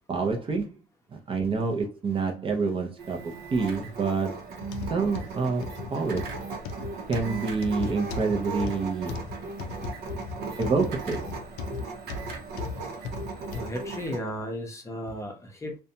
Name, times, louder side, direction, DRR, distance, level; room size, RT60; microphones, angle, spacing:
voice 1, 0.1-0.7 1.1-4.4 4.9-6.3 7.1-9.2 10.6-11.2, right 4 dB, 30° right, 0.5 m, -27 dB
sound 1, 3.0-14.2, right 4 dB, 75° right, 0.7 m, -37 dB
sound 2, 4.6-13.7 14.3-14.4 15.1-15.2, left 5 dB, 85° left, 0.4 m, -37 dB
voice 2, 13.5-15.8, equal, 15° left, 0.7 m, -34 dB
2.6 x 2.2 x 2.7 m
cardioid pair, 110°, 17 cm